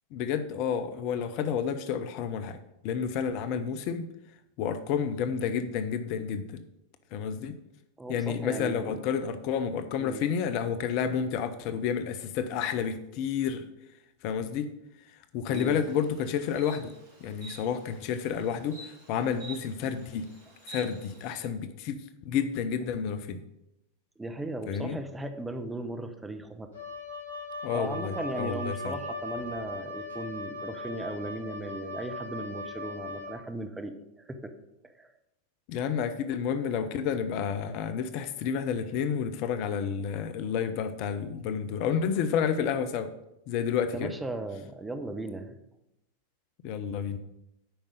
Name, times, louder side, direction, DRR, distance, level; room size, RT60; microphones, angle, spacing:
voice 1, 0.1-2.6 2.8-4.1 4.6-6.6 7.1-7.6 8.1-13.7 14.2-14.7 15.3-16.9 17.2-20.3 20.7-23.4 24.7-25.0 27.6-28.9 35.7-43.1 43.5-44.1 46.6-47.2, left 7 dB, 45° left, 11 dB, 0.6 m, -30 dB
voice 2, 8.0-9.0 10.0-10.2 15.5-15.8 24.2-26.7 27.7-34.5 35.0-35.1 43.9-45.6, right 2 dB, 10° right, 7 dB, 0.9 m, -37 dB
Insect, 15.5-21.4, right 2 dB, 55° right, 3.5 m, -49 dB
Wind instrument woodwind instrument, 26.7-33.4, left 2 dB, 60° left, 4.2 m, -38 dB
8.8 x 5.3 x 6.5 m, 0.86 s
figure-of-eight pair, 90°, 0 cm